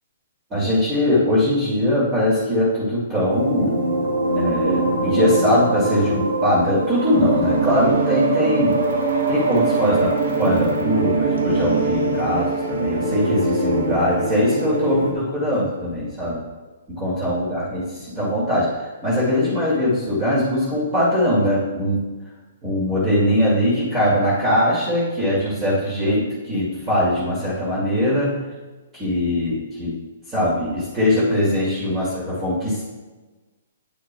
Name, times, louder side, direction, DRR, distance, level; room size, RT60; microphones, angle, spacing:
voice 1, 0.5-3.8 4.3-8.8 9.3-16.4 16.9-18.8 19.0-22.0 22.6-28.4 28.9-30.0 30.3-32.9, left 1 dB, 20° right, -8 dB, 2.2 m, -21 dB
sound 1, 3.3-15.1, right 2 dB, 70° right, 1.1 m, -22 dB
9.1 x 6.3 x 2.3 m, 1.3 s
hypercardioid pair, 130°, 0 cm